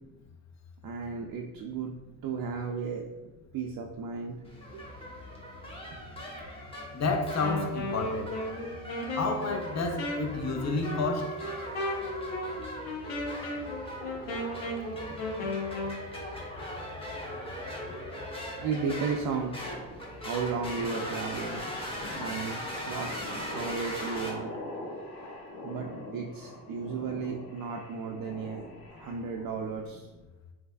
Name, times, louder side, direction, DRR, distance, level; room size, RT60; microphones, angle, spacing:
voice 1, 0.8-1.9 2.2-3.0 3.5-4.4 4.7-4.8 5.9-6.0 18.6-19.5 20.2-21.6 22.2-23.1 23.5-24.5 25.6-28.6 28.9-30.1, right 5 dB, 55° right, 1 dB, 0.5 m, -34 dB
sound 1, 4.4-24.3, equal, 15° left, 1.0 m, -40 dB
voice 2, 6.9-8.3 9.2-11.4, left 3 dB, 40° left, 5 dB, 0.6 m, -30 dB
Wind instrument woodwind instrument, 7.4-16.0, left 1 dB, 90° left, 0.8 m, -35 dB
sound 2, 19.6-29.5, left 1 dB, 55° left, 1.0 m, -44 dB
3.3 x 3.2 x 2.2 m, 1.1 s
supercardioid pair, 70°, 42 cm